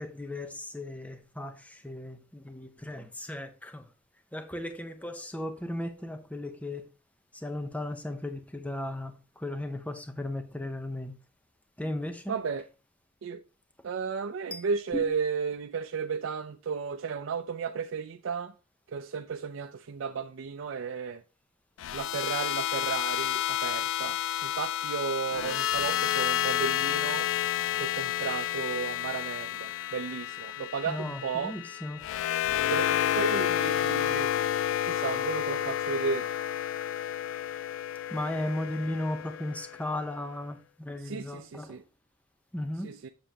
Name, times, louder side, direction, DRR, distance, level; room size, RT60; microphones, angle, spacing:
voice 1, 0.0-3.9 4.3-6.8 7.3-11.1 11.8-12.4 14.5-14.6 14.9-15.0 30.9-32.0 38.1-41.8 42.5-42.9, left 1 dB, 5° left, 0.7 m, -36 dB
voice 2, 12.3-12.6 13.2-13.4 13.8-18.5 18.9-21.2 21.9-27.3 27.8-31.5 32.7-34.3 34.8-36.3 41.1-41.8 42.8-43.1, right 5 dB, 85° right, 0.4 m, -34 dB
sound 1, 21.8-40.0, left 11 dB, 80° left, 0.3 m, -30 dB
7.5 x 7.1 x 2.8 m
head